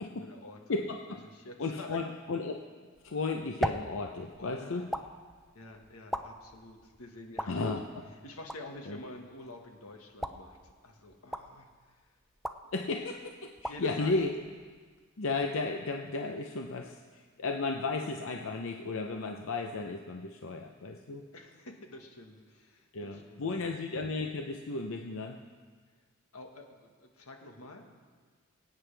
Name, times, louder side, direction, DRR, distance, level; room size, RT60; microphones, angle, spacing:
voice 1, 0.0-0.8 1.1-2.1 4.4-4.9 5.5-7.6 8.2-12.1 13.7-14.3 21.3-23.8 26.3-27.9, left 2 dB, 90° left, 3 dB, 1.6 m, -48 dB
voice 2, 0.7-1.0 1.6-2.6 3.0-4.8 7.5-8.0 8.9-9.0 12.7-14.3 15.2-21.2 22.9-25.4, left 3 dB, 65° left, 3 dB, 0.7 m, -34 dB
sound 1, 2.9-15.1, equal, ahead, 0.4 m, -42 dB
23.5 x 9.1 x 3.4 m, 1.5 s
head